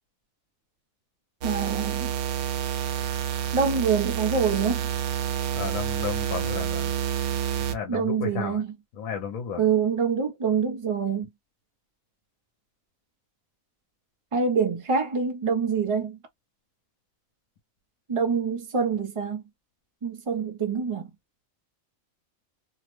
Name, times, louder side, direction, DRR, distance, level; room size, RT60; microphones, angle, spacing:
voice 1, 1.4-2.1 3.5-4.8 7.9-8.7 9.6-11.3 14.3-16.2 18.1-19.4 20.0-21.1, right 6 dB, 45° right, 0.4 m, -25 dB
sound 1, 1.4-7.8, right 10 dB, 90° right, 1.0 m, -28 dB
voice 2, 5.5-6.9 7.7-8.6 8.9-9.6, left 7 dB, 75° left, 1.1 m, -33 dB
2.8 x 2.0 x 3.0 m
omnidirectional pair, 1.5 m